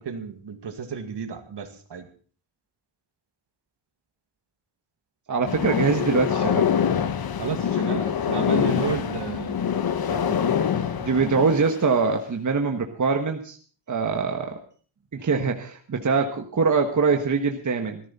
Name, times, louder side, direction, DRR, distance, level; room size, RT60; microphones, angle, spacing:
voice 1, 0.0-2.1 7.4-9.6 10.1-10.5, right 6 dB, 60° right, 6 dB, 2.3 m, -32 dB
voice 2, 5.3-6.7 10.5-13.6 13.9-14.6 15.1-18.0, right 4 dB, 40° right, 4 dB, 1.5 m, -23 dB
sound 1, 5.5-11.9, left 7 dB, 50° left, 1.1 m, -25 dB
17.5 x 14.5 x 4.3 m, 0.43 s
wide cardioid pair, 125°, 46 cm